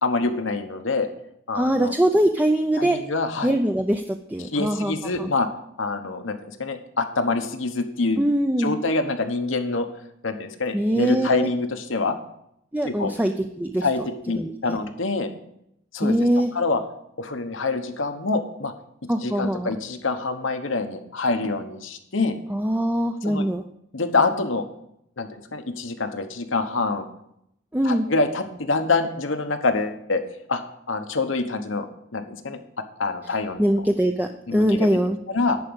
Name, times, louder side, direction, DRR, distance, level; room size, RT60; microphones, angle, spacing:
voice 1, 0.0-1.1 1.5-1.9 2.8-3.5 4.5-5.5 5.8-8.2 8.6-9.9 10.2-12.2 12.8-13.1 13.8-15.3 15.9-16.3 16.5-16.8 17.2-18.7 19.2-22.4 23.2-23.5 23.9-24.7 25.2-27.1 27.8-30.2 30.5-30.6 30.9-31.9 32.1-32.6 33.0-33.6 34.5-34.9 35.3-35.6, left 3 dB, 75° left, 6 dB, 1.1 m, -25 dB
voice 2, 1.5-3.0 3.4-4.9 5.2-5.3 8.2-8.7 10.7-11.5 12.7-13.9 14.4-14.8 16.0-16.5 19.1-19.7 22.5-23.6 27.7-28.1 33.6-35.2, equal, 10° right, 4 dB, 0.5 m, -22 dB
11.0 x 5.0 x 8.0 m, 0.75 s
head